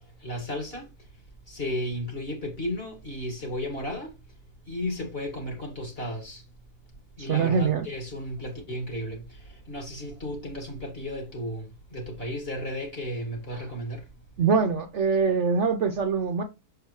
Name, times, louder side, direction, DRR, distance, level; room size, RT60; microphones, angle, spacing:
voice 1, 0.2-0.9 1.5-4.2 4.7-6.4 7.2-14.1, left 1 dB, 40° left, 2.2 m, -34 dB
voice 2, 7.2-7.9 14.4-16.4, right 5 dB, 60° right, 0.9 m, -24 dB
6.8 x 4.9 x 3.1 m
omnidirectional pair, 1.6 m